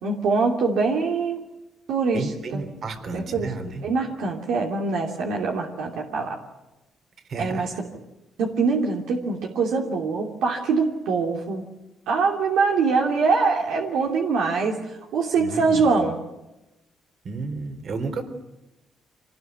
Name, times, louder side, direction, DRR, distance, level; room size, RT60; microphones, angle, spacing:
voice 1, 0.0-1.4 1.9-2.6 3.1-3.5 3.8-6.4 7.4-7.7 8.4-11.6 12.1-16.2, right 4 dB, 85° right, 0 dB, 2.9 m, -23 dB
voice 2, 2.1-3.9 7.3-7.7 15.4-15.9 17.2-18.2, right 3 dB, 55° right, 7 dB, 3.8 m, -32 dB
25.0 x 19.0 x 9.5 m, 0.97 s
cardioid pair, 90°, 0 cm